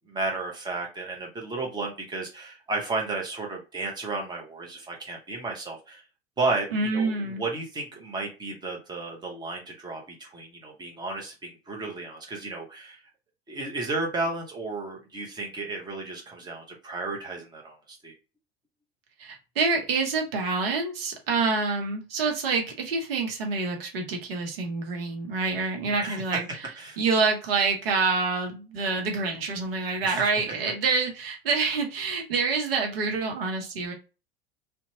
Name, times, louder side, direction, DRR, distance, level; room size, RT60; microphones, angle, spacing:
voice 1, 0.1-6.0 6.4-13.0 13.5-18.1 25.8-26.2 26.8-27.0 30.0-30.3, right 3 dB, 15° right, 0 dB, 0.9 m, -33 dB
voice 2, 6.7-7.4 19.2-26.5 27.0-33.9, right 4 dB, 65° right, 3 dB, 0.8 m, -27 dB
2.7 x 2.2 x 2.7 m, 0.31 s
figure-of-eight pair, 75°, 31 cm